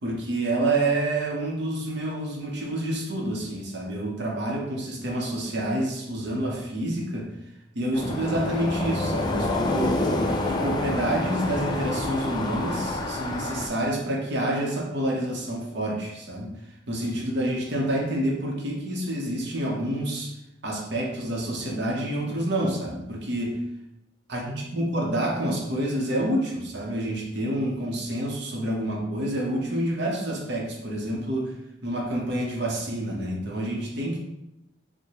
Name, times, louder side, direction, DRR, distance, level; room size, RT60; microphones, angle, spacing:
voice 1, 0.0-7.3 7.7-10.0 10.4-16.5 16.9-20.3 20.6-23.6 24.3-31.5 31.8-34.3, right 1 dB, 60° right, -1 dB, 0.8 m, -28 dB
sound 1, 7.9-13.7, left 2 dB, 20° left, 0.3 m, -27 dB
4.6 x 2.2 x 2.9 m, 0.85 s
head